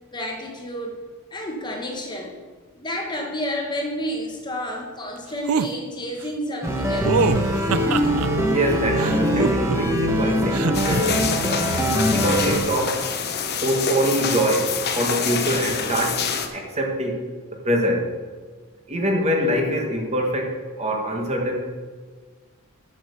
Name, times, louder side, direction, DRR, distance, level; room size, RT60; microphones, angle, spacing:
voice 1, 0.1-1.0 1.3-2.3 2.7-7.3, equal, 20° left, 1 dB, 1.2 m, -30 dB
sound 1, 5.5-5.7 7.1-8.3 9.0-10.0 10.5-11.0, right 5 dB, 70° right, 0.4 m, -24 dB
sound 2, 6.6-12.6, equal, 10° right, 1.3 m, -22 dB
voice 2, 8.5-11.2 11.9-13.0 13.6-16.2 16.5-17.2 17.5-18.1 18.9-21.7, equal, 30° right, 1 dB, 1.4 m, -24 dB
sound 3, 10.7-16.5, left 6 dB, 45° left, 0.8 m, -26 dB
8.7 x 6.5 x 6.7 m, 1.5 s
head